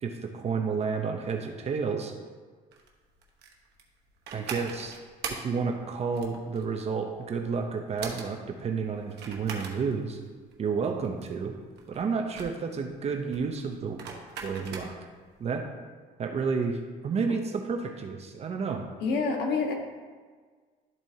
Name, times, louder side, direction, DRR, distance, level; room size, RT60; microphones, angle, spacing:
voice 1, 0.0-2.1 4.3-5.0 5.3-10.2 10.6-11.5 11.9-14.0 14.4-14.9 15.4-15.7 16.2-18.9, right 5 dB, 40° right, 4 dB, 0.7 m, -31 dB
sound 1, 2.7-15.2, right 5 dB, 75° right, 1.2 m, -41 dB
voice 2, 19.0-19.7, left 4 dB, 75° left, 1 dB, 1.3 m, -27 dB
12.0 x 4.3 x 2.8 m, 1.5 s
cardioid pair, 110°, 17 cm